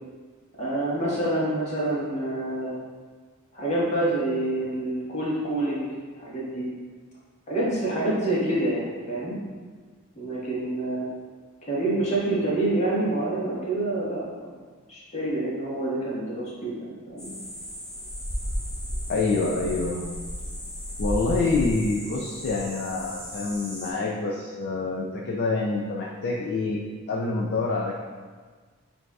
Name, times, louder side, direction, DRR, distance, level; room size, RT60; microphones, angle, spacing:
voice 1, 0.6-2.7 3.5-5.9 6.1-6.7 7.5-9.4 10.2-11.1 11.6-14.6 14.9-17.3, right 1 dB, 30° left, -7 dB, 1.2 m, -27 dB
sound 1, 17.2-23.9, equal, 15° left, 0.9 m, -34 dB
voice 2, 19.1-20.1 21.0-26.8 27.1-28.0, left 3 dB, 50° left, -2 dB, 0.4 m, -26 dB
7.7 x 2.6 x 2.3 m, 1.5 s
head